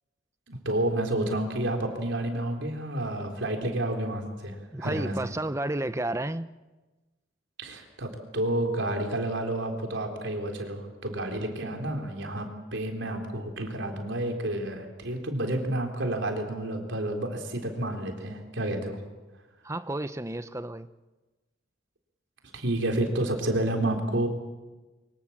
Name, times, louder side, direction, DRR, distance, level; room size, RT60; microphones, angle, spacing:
voice 1, 0.5-5.3 7.6-19.0 22.5-24.3, right 1 dB, 65° right, 3 dB, 3.9 m, -30 dB
voice 2, 4.7-6.5 19.6-20.9, right 1 dB, 15° right, 12 dB, 0.7 m, -31 dB
24.0 x 23.5 x 7.4 m, 1.2 s
head